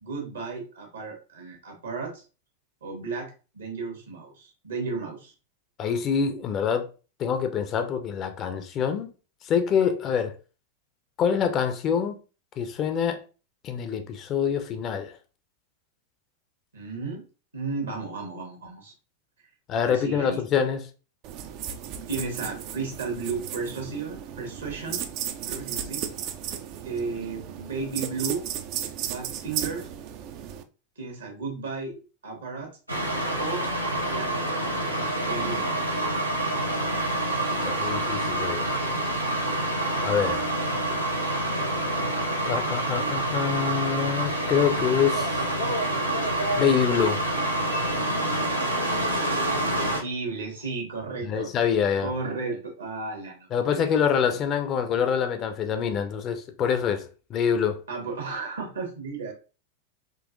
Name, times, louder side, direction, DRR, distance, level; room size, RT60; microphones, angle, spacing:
voice 1, 0.0-2.2 2.8-5.3 16.7-17.3 17.5-18.9 19.9-20.4 22.1-25.0 25.5-26.0 26.8-28.4 29.0-29.9 31.0-32.7 33.4-33.7 34.0-36.0 49.5-51.5 52.0-53.9 54.2-54.4 57.9-59.3, right 4 dB, 70° right, 1.2 m, -34 dB
voice 2, 5.8-6.9 7.2-9.1 9.4-10.3 11.2-12.2 12.6-13.2 13.6-15.1 19.7-20.8 37.5-38.7 40.0-40.5 42.4-45.5 46.6-47.2 51.2-52.1 53.5-57.8, left 7 dB, 30° left, 0.5 m, -25 dB
sound 1, 21.2-30.6, right 9 dB, 40° right, 0.4 m, -35 dB
sound 2, 32.9-50.0, right 1 dB, 90° right, 0.7 m, -27 dB
3.8 x 2.8 x 2.5 m
figure-of-eight pair, 90°, 0 cm